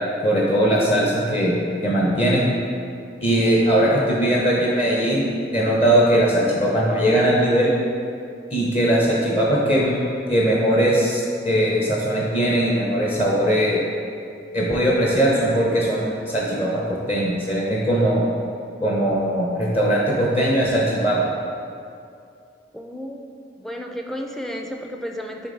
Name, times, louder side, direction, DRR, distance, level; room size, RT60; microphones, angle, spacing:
voice 1, 0.2-1.6 1.8-2.4 3.2-7.7 8.5-13.8 14.5-16.8 17.1-18.2 18.8-21.2, right 1 dB, 35° left, -4 dB, 0.9 m, -20 dB
voice 2, 22.7-23.2 23.6-25.5, equal, ahead, 2 dB, 0.4 m, -32 dB
10.0 x 3.4 x 3.9 m, 2.5 s
head